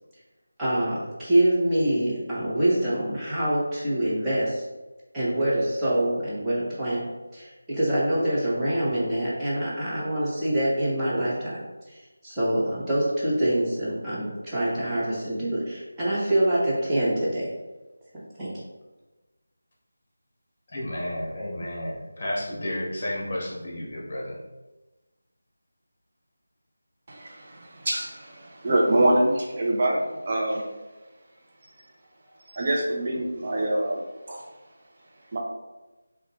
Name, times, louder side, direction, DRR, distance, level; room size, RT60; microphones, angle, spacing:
voice 1, 0.6-4.6 5.1-7.0 7.3-11.6 12.2-17.5 18.1-18.5, right 1 dB, 10° right, -11 dB, 1.1 m, -25 dB
voice 2, 20.7-24.4, left 1 dB, 35° left, -3 dB, 1.4 m, -32 dB
voice 3, 27.1-30.6 32.5-34.0 34.3-34.4 35.3-35.4, right 1 dB, 35° right, -2 dB, 0.7 m, -25 dB
6.4 x 2.5 x 3.1 m, 1.1 s
figure-of-eight pair, 165°, 0 cm